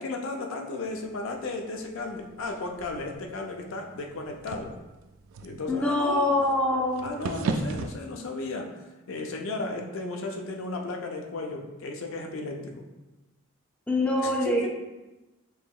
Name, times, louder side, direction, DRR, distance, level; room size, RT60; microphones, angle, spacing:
voice 1, 0.0-4.7 5.4-6.3 7.0-12.9 14.4-14.7, left 2 dB, 80° left, 2 dB, 0.5 m, -34 dB
sound 1, 0.9-8.0, right 4 dB, 85° right, 0.3 m, -38 dB
voice 2, 5.7-7.2 13.9-14.7, left 1 dB, 5° left, -2 dB, 0.4 m, -25 dB
4.9 x 2.8 x 2.3 m, 1.1 s
head